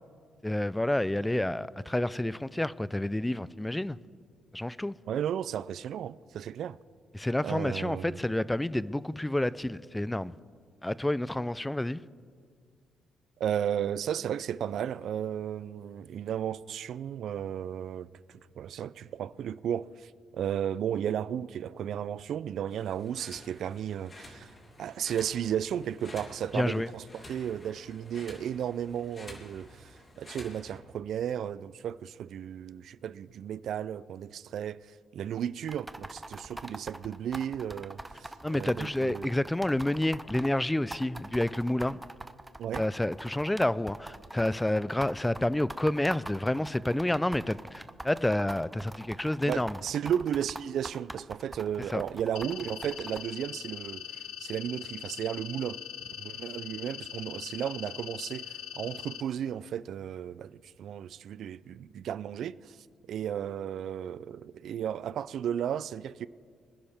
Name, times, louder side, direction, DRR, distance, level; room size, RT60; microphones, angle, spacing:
voice 1, 0.4-4.0 4.5-4.9 7.1-10.3 10.8-12.0 26.5-26.9 38.4-42.0 42.8-49.8 51.9-52.0, left 1 dB, 10° left, 0.4 m, -29 dB
voice 2, 5.1-6.8 7.4-8.2 13.4-24.5 24.8-39.3 42.6-42.8 49.5-55.8 56.2-62.8 63.1-66.3, right 9 dB, 70° right, 0.3 m, -34 dB
sound 1, 22.7-30.8, left 1 dB, 35° left, 3.1 m, -50 dB
sound 2, 35.7-40.5 40.9-53.2, right 1 dB, 15° right, 0.7 m, -43 dB
sound 3, 52.4-59.2, left 12 dB, 90° left, 0.7 m, -41 dB
24.5 x 10.5 x 3.5 m
cardioid pair, 75°, 0 cm